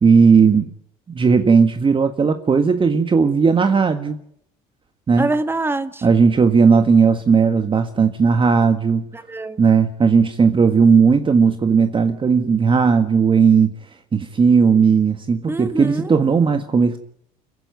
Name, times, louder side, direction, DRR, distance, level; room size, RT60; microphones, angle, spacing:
voice 1, 0.0-0.7 1.1-4.2 5.1-5.3 6.0-9.1 9.6-13.7 14.1-17.0, right 5 dB, 30° right, 8 dB, 1.6 m, -16 dB
voice 2, 5.2-6.1 9.1-9.6 15.5-16.2, right 2 dB, 15° right, 11 dB, 1.7 m, -25 dB
29.5 x 10.5 x 9.3 m, 0.73 s
supercardioid pair, 85°, 17 cm